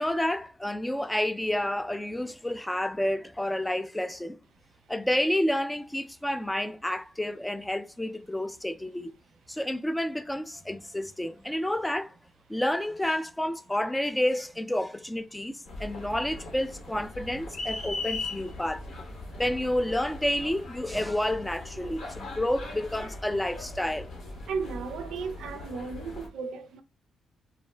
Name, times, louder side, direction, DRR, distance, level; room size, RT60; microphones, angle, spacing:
voice 1, 0.0-4.4 4.9-9.1 9.5-12.2 12.5-18.8 19.4-24.1, left 1 dB, 10° left, 0.3 m, -30 dB
sound 1, 15.6-26.3, left 2 dB, 65° left, 0.9 m, -39 dB
voice 2, 24.5-26.8, right 5 dB, 85° right, 0.4 m, -35 dB
2.4 x 2.0 x 3.2 m
cardioid pair, 80°, 0 cm